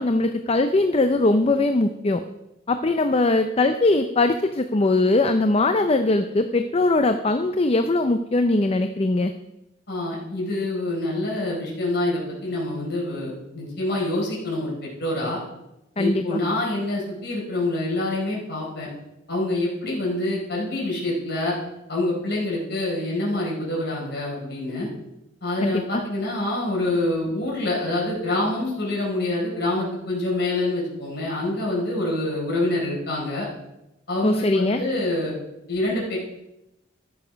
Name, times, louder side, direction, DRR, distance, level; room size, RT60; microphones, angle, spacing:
voice 1, 0.0-2.2 2.7-9.3 16.0-16.4 25.6-26.0 34.2-34.8, left 2 dB, 30° left, 8 dB, 0.5 m, -21 dB
voice 2, 9.9-15.4 16.0-18.9 19.3-21.6 21.9-24.9 25.4-33.5 34.1-35.3 35.7-36.2, left 2 dB, 60° left, -4 dB, 4.6 m, -26 dB
13.0 x 7.1 x 5.2 m, 0.90 s
head